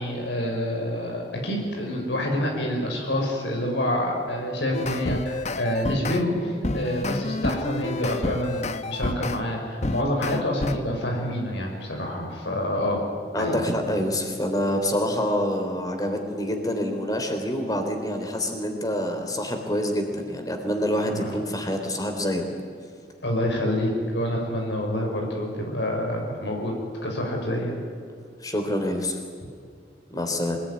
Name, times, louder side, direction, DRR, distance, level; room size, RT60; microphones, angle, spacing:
voice 1, 0.0-13.0 13.3-13.6 21.1-21.3 23.2-26.7 27.0-27.8, left 1 dB, 85° left, 0 dB, 5.6 m, -27 dB
sound 1, 4.7-6.2 6.6-9.4 9.8-10.8, left 2 dB, 40° left, 1.0 m, -29 dB
voice 2, 13.3-22.5 28.4-29.2 30.1-30.6, left 1 dB, 20° left, 4 dB, 3.7 m, -26 dB
26.0 x 19.5 x 10.0 m, 2.1 s
head